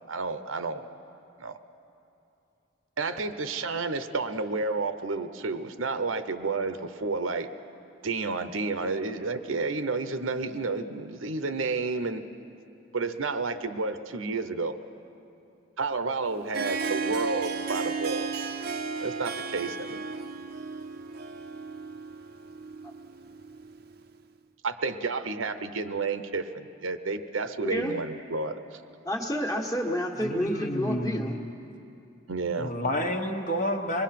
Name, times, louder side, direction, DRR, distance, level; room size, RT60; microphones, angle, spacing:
voice 1, 0.1-0.8 1.4-1.6 3.0-7.5 8.0-12.2 12.9-14.7 15.8-18.3 19.0-20.0 24.6-28.8 32.3-32.7, right 3 dB, 80° right, 10 dB, 0.9 m, -31 dB
Harp, 16.2-24.0, right 4 dB, 50° right, 0.7 m, -34 dB
voice 2, 27.6-27.9 29.0-31.4, equal, 15° left, 2 dB, 1.5 m, -29 dB
voice 3, 30.1-31.5 32.6-34.0, left 1 dB, 40° left, 4 dB, 1.3 m, -30 dB
25.5 x 21.0 x 5.9 m, 2.7 s
head